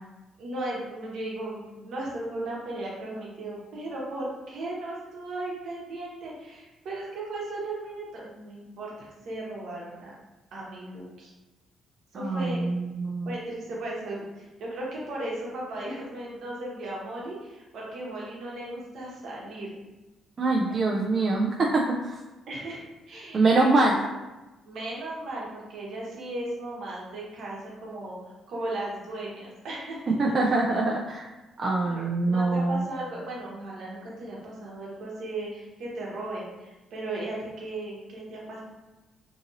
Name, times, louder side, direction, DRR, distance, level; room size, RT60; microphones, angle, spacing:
voice 1, 0.4-10.1 10.5-11.3 12.1-12.7 13.2-19.7 22.5-23.7 24.6-28.2 28.5-30.3 31.8-38.6, right 2 dB, 70° right, -4 dB, 0.9 m, -36 dB
voice 2, 12.1-13.3 20.4-22.1 23.3-24.0 30.2-31.3 31.6-32.8, right 2 dB, 40° right, -2 dB, 0.3 m, -24 dB
2.8 x 2.6 x 2.6 m, 1.1 s
cardioid pair, 90°, 0 cm